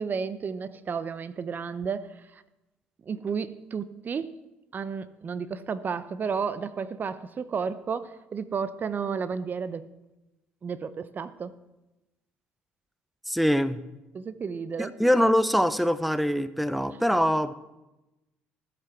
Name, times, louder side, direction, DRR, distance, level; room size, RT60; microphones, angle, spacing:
voice 1, 0.0-2.1 3.1-4.3 4.7-9.9 10.6-11.6 14.1-15.0, right 6 dB, 40° right, 0.7 m, -32 dB
voice 2, 13.3-13.8 14.8-17.5, equal, ahead, 0.7 m, -23 dB
15.0 x 7.6 x 6.0 m
hypercardioid pair, 60°, 5 cm